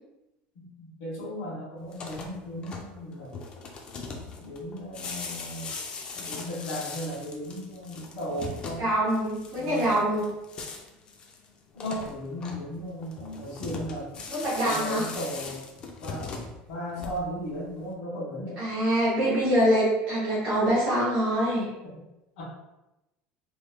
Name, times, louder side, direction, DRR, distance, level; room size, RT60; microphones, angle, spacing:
voice 1, 0.5-3.3 4.4-5.7 6.1-8.9 9.6-10.1 11.7-14.3 14.6-15.7 16.0-16.4 16.7-18.6 22.4-22.5, equal, 90° left, -10 dB, 1.4 m, -36 dB
sound 1, 1.8-17.5, left 4 dB, 25° left, 0.3 m, -40 dB
voice 2, 8.8-10.3 14.3-15.0 18.6-21.7, right 1 dB, 35° right, -11 dB, 1.5 m, -24 dB
3.3 x 3.1 x 2.2 m, 0.96 s
cardioid pair, 180°, 4 cm